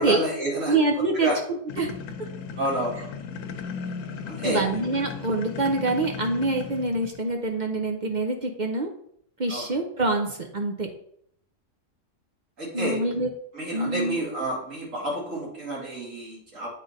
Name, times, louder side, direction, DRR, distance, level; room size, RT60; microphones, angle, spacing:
voice 1, 0.0-1.4 2.6-3.1 4.3-4.6 9.5-9.7 12.6-13.0 13.5-16.7, right 1 dB, 85° right, -5 dB, 2.8 m, -29 dB
voice 2, 0.7-1.9 4.4-8.9 9.4-10.9 12.7-13.3 13.7-14.2, right 2 dB, 45° right, 3 dB, 0.7 m, -25 dB
sound 1, 1.7-7.3, left 5 dB, 90° left, 1.0 m, -36 dB
8.3 x 3.8 x 4.0 m, 0.68 s
omnidirectional pair, 1.3 m